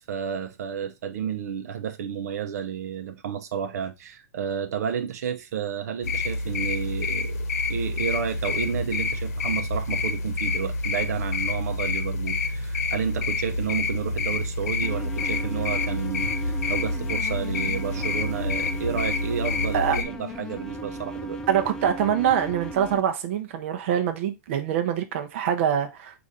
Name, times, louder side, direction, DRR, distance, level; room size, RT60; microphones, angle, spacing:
voice 1, 0.1-21.4, right 8 dB, 85° right, 0.7 m, -31 dB
sound 1, 6.0-20.0, left 3 dB, 90° left, 0.9 m, -28 dB
sound 2, 14.8-23.0, right 1 dB, 5° left, 0.3 m, -36 dB
voice 2, 21.5-26.3, right 9 dB, 50° right, 0.7 m, -24 dB
4.9 x 2.6 x 4.1 m
supercardioid pair, 170°, 8 cm